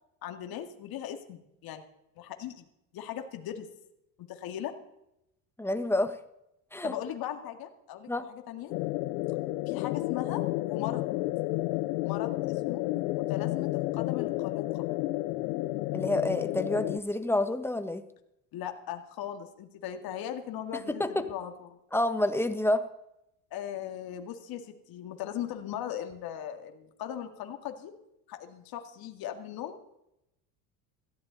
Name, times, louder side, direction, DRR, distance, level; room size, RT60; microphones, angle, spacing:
voice 1, 0.2-1.8 2.2-2.7 2.9-3.7 4.3-4.7 6.8-8.7 9.7-11.1 12.0-12.8 13.2-14.9 18.5-21.8 23.5-27.9 28.3-29.8, left 10 dB, 55° left, 5 dB, 2.1 m, -39 dB
voice 2, 5.6-6.1 6.7-6.9 8.1-8.2 15.9-18.0 20.9-21.3 21.9-22.9, left 1 dB, 5° left, 9 dB, 1.4 m, -28 dB
sound 1, 8.7-17.0, left 19 dB, 75° left, 0.7 m, -31 dB
17.0 x 14.5 x 4.0 m, 0.84 s
supercardioid pair, 90°, 42 cm